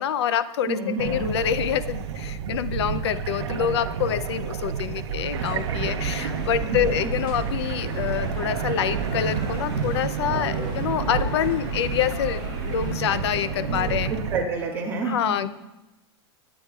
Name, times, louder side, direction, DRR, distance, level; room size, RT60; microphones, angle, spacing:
voice 1, 0.0-14.1 15.0-15.5, left 9 dB, 70° left, 15 dB, 0.6 m, -26 dB
voice 2, 0.7-1.3 6.6-6.8 13.6-15.5, right 3 dB, 15° right, -4 dB, 1.9 m, -30 dB
sound 1, 1.0-14.4, right 7 dB, 85° right, 0.8 m, -30 dB
sound 2, 5.3-14.2, equal, 50° left, 4.5 m, -36 dB
21.5 x 9.1 x 2.4 m, 1.0 s
supercardioid pair, 175°, 14 cm